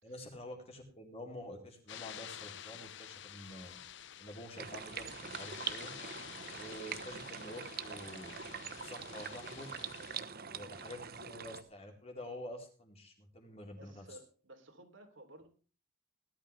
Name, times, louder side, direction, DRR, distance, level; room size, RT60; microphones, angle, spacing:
voice 1, 0.0-3.8 4.2-5.9 6.6-8.3 8.8-9.7 10.5-14.1, left 1 dB, 30° left, 2 dB, 4.1 m, -48 dB
sound 1, 1.9-10.2, left 10 dB, 60° left, 0.7 m, -50 dB
sound 2, 4.6-11.6, right 7 dB, 50° right, 1.1 m, -44 dB
voice 2, 10.3-10.8 13.8-15.5, right 1 dB, 65° right, 5 dB, 3.3 m, -56 dB
18.5 x 12.0 x 3.4 m, 0.37 s
head